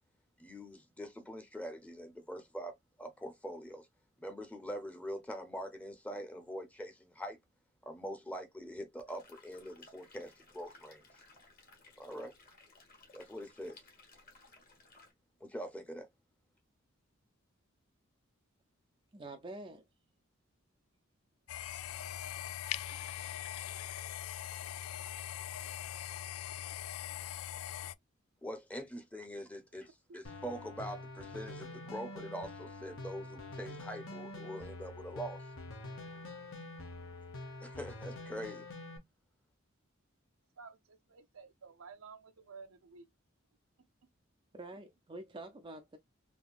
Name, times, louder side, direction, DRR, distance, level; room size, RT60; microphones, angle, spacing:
voice 1, 0.4-3.9 4.2-7.4 7.9-11.2 12.0-12.3 13.1-13.8 15.4-16.1 28.4-35.5 37.6-38.7, equal, 5° left, 0.7 m, -44 dB
sound 1, 9.1-15.1, left 3 dB, 45° left, 1.6 m, -60 dB
voice 2, 19.1-19.8 44.5-46.0, right 2 dB, 25° right, 0.4 m, -47 dB
sound 2, 21.5-28.0, left 11 dB, 85° left, 0.3 m, -41 dB
sound 3, 30.2-39.0, left 2 dB, 70° left, 1.0 m, -46 dB
voice 3, 40.6-43.1, right 5 dB, 90° right, 0.7 m, -53 dB
3.5 x 2.8 x 2.3 m
head